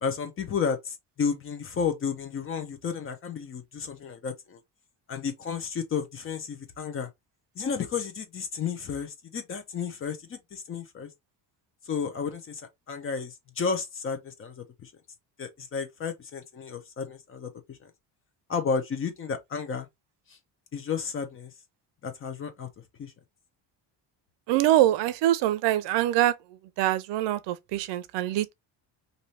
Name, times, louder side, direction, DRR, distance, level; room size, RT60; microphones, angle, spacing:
voice 1, 0.0-4.6 5.1-7.1 7.6-11.1 11.9-12.6 12.9-14.9 15.4-17.9 18.5-19.9 20.3-20.4 20.7-21.5 22.0-22.7 23.0-23.1, left 6 dB, 30° left, 0.6 m, -32 dB
voice 2, 24.5-26.3 26.8-28.5, right 13 dB, 80° right, 0.5 m, -24 dB
2.7 x 2.7 x 3.1 m
cardioid pair, 165°, 42 cm